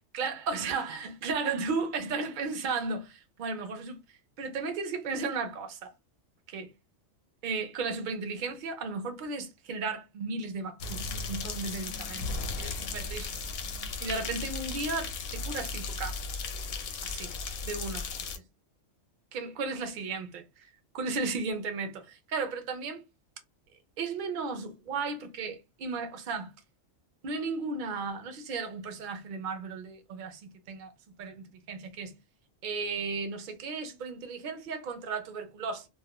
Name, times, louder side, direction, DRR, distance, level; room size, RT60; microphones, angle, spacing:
voice 1, 0.1-4.0 4.4-5.9 6.5-6.7 7.4-12.2 12.6-13.3 14.0-16.2 17.0-17.4 17.6-18.1 19.3-20.4 20.9-23.0 24.0-26.5 27.2-30.9 31.2-32.1 32.6-35.9, right 4 dB, 55° right, 0.6 m, -35 dB
sound 1, 10.8-18.4, left 4 dB, 65° left, 0.6 m, -36 dB
2.4 x 2.1 x 2.8 m
omnidirectional pair, 1.3 m